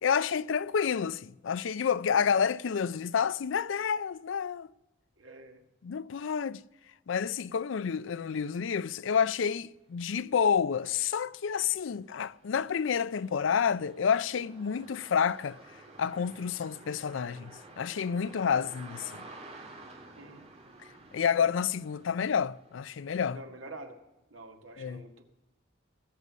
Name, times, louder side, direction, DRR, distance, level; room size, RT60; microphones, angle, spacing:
voice 1, 0.0-4.7 5.8-6.6 7.1-15.6 16.0-19.2 21.1-23.4 24.8-25.0, left 7 dB, 70° left, 0.4 m, -29 dB
voice 2, 5.2-5.6 20.1-20.5 23.3-24.0 24.3-25.2, right 2 dB, 80° right, 1.9 m, -47 dB
sound 1, 10.0-10.1 10.5-23.4, right 2 dB, 30° right, 2.2 m, -52 dB
19.0 x 8.1 x 6.2 m
head